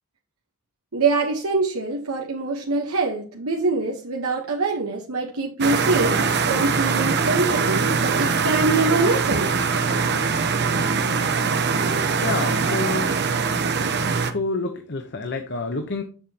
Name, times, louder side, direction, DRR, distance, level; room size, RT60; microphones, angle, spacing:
voice 1, 0.9-6.2 6.5-9.5, right 3 dB, 75° right, 1 dB, 1.2 m, -24 dB
sound 1, 5.6-14.3, right 5 dB, 50° right, 0.9 m, -22 dB
voice 2, 12.1-13.1 14.2-16.0, left 3 dB, 50° left, 6 dB, 0.9 m, -28 dB
7.4 x 7.1 x 2.9 m, 0.39 s
head